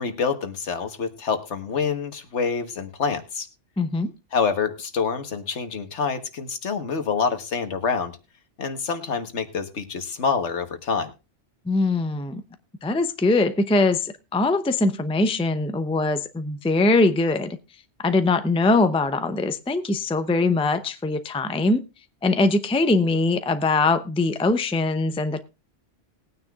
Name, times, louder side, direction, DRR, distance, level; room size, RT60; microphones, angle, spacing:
voice 1, 0.0-3.5 4.3-8.2 8.6-11.1, left 5 dB, 75° left, 1.5 m, -26 dB
voice 2, 3.8-4.1 11.7-12.4 12.8-17.6 18.0-21.8 22.2-25.4, left 2 dB, 5° left, 0.5 m, -22 dB
20.0 x 9.4 x 2.4 m
omnidirectional pair, 1.2 m